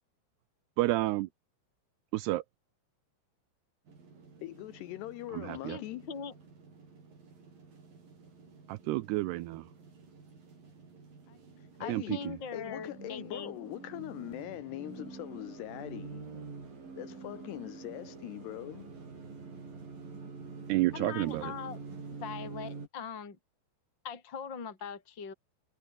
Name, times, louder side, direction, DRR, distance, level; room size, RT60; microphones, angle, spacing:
voice 1, 0.8-1.3 2.1-2.4 5.3-5.8 8.7-9.6 11.9-12.0 20.7-21.5, right 18 dB, 85° right, 2.4 m, -30 dB
sound 1, 3.9-22.9, right 4 dB, 50° right, 7.9 m, -48 dB
voice 2, 4.4-6.2 11.3-11.4 11.8-16.3 17.0-18.9, left 15 dB, 75° left, 2.8 m, -42 dB
voice 3, 5.5-6.3 11.8-13.6 20.9-21.8 22.2-23.4 24.0-25.3, left 6 dB, 25° left, 3.9 m, -41 dB
omnidirectional pair, 5.3 m